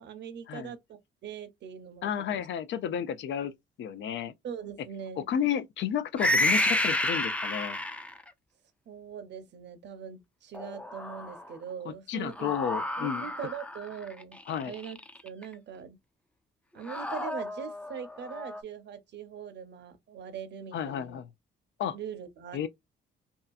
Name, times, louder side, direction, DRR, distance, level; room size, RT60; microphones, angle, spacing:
voice 1, 0.0-2.5 4.4-5.3 8.9-12.5 13.0-14.4 14.6-15.0 15.2-16.0 16.7-21.2 21.9-22.6, right 7 dB, 65° right, 0.8 m, -41 dB
voice 2, 2.0-3.5 3.8-4.3 5.2-7.8 11.9-13.3 14.5-14.7 20.7-21.3 21.8-22.0 22.5-22.7, left 9 dB, 70° left, 0.5 m, -32 dB
sound 1, 6.2-8.3 10.5-11.5 12.3-15.4 16.9-18.6, left 1 dB, 5° left, 0.4 m, -30 dB
2.7 x 2.4 x 2.4 m
cardioid pair, 90°, 20 cm